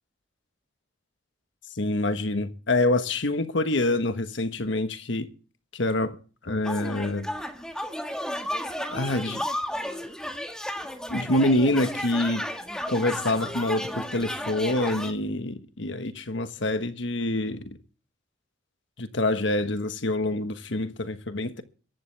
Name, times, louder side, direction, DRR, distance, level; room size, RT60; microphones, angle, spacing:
voice 1, 1.7-5.3 5.7-6.1 6.4-7.3 8.9-9.4 11.1-12.5 12.9-17.8 19.0-21.6, left 2 dB, 65° left, 1.3 m, -26 dB
sound 1, 6.6-15.1, equal, 5° left, 1.8 m, -33 dB
23.0 x 11.5 x 3.4 m
head